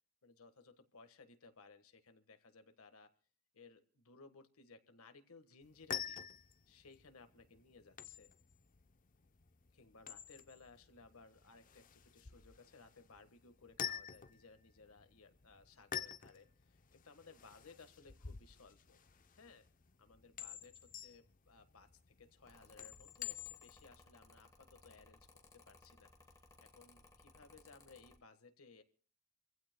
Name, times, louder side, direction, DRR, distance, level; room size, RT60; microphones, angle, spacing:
voice 1, 0.2-3.1 3.5-6.2 6.7-8.3 9.7-19.0 19.3-19.6 20.0-21.9 22.2-26.1 26.6-28.8, left 4 dB, 75° left, 8 dB, 1.5 m, -61 dB
sound 1, 5.6-23.9, left 9 dB, 35° left, 0.6 m, -49 dB
Mechanical fan, 22.4-28.2, left 2 dB, 15° left, 1.4 m, -63 dB
27.0 x 15.5 x 2.2 m, 0.41 s
head